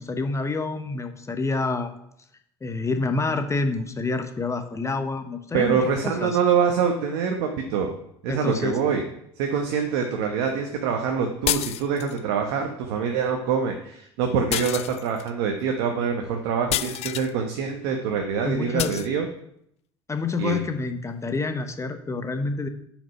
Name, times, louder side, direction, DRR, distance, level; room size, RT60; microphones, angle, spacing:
voice 1, 0.0-1.9 2.6-5.8 6.2-6.4 8.3-8.8 18.4-19.0 20.1-22.7, left 3 dB, 20° left, 7 dB, 0.9 m, -27 dB
voice 2, 5.5-7.9 8.2-9.0 9.4-19.3 20.4-20.6, right 6 dB, 70° right, 3 dB, 1.0 m, -25 dB
sound 1, 11.5-12.2 14.5-15.3 16.7-17.3 18.8-19.1, left 13 dB, 50° left, 0.4 m, -28 dB
6.0 x 5.2 x 5.4 m, 0.73 s
hypercardioid pair, 70°, 14 cm